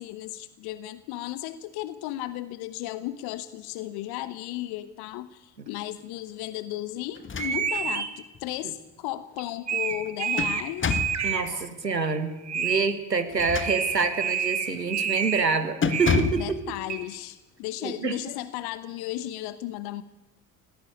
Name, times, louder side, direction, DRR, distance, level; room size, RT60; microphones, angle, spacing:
voice 1, 0.0-11.0 11.5-12.0 15.0-15.2 15.9-16.0 16.3-20.0, left 14 dB, 50° left, 15 dB, 1.1 m, -35 dB
sound 1, 7.2-7.9 8.3-8.4 9.9-11.2 13.3-14.2 14.7-14.9 15.2-15.4 15.8-16.5, left 5 dB, 25° left, 1.8 m, -29 dB
sound 2, 7.4-8.1 9.4-9.5 9.7-10.6 10.9-11.4 12.0-12.2 12.4-12.8 13.4-15.5 15.9-16.4 16.9-17.0, right 7 dB, 35° right, 2.9 m, -29 dB
voice 2, 11.2-16.6 17.8-18.2, right 4 dB, 85° right, 11 dB, 1.6 m, -27 dB
19.0 x 17.5 x 9.7 m, 1.0 s
figure-of-eight pair, 60°, 48 cm